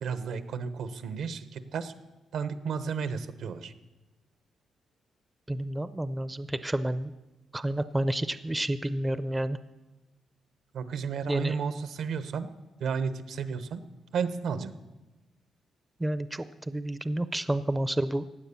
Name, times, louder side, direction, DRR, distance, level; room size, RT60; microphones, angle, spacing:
voice 1, 0.0-1.9 2.3-3.7 10.7-12.5 12.8-13.8 14.1-14.7, right 6 dB, 75° right, 12 dB, 1.0 m, -32 dB
voice 2, 5.5-7.1 7.5-9.6 11.3-11.6 16.0-18.3, right 1 dB, 10° right, 13 dB, 0.5 m, -30 dB
16.5 x 9.5 x 7.0 m, 1.1 s
cardioid pair, 130°, 0 cm